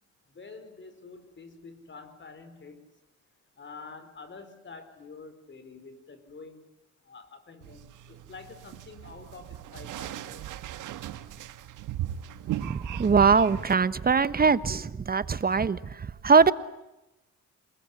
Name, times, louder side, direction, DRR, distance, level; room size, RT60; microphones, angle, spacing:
voice 1, 0.3-2.8 3.6-6.7 7.0-10.5, left 4 dB, 40° left, 11 dB, 4.8 m, -47 dB
sound 1, 7.6-13.7, right 12 dB, 85° right, 1.6 m, -38 dB
voice 2, 12.5-16.5, right 5 dB, 30° right, 15 dB, 1.2 m, -22 dB
27.0 x 22.0 x 9.9 m, 0.93 s
cardioid pair, 90°, 30 cm